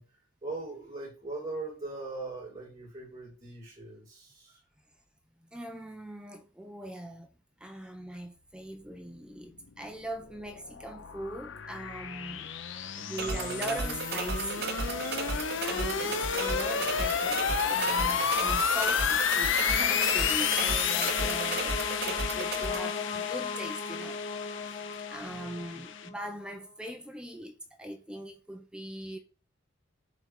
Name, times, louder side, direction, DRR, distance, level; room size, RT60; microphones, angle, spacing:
voice 1, 0.0-4.6 25.1-25.6, right 3 dB, 25° right, 3.8 m, -41 dB
voice 2, 5.4-7.3 7.6-12.5 13.0-14.8 15.6-24.2 25.1-29.2, right 1 dB, 5° right, 0.7 m, -40 dB
sound 1, 10.0-26.1, left 7 dB, 65° left, 0.7 m, -31 dB
sound 2, 13.2-22.8, right 3 dB, 55° right, 1.2 m, -34 dB
sound 3, 18.7-26.5, left 5 dB, 30° left, 0.6 m, -38 dB
11.0 x 4.0 x 4.8 m
head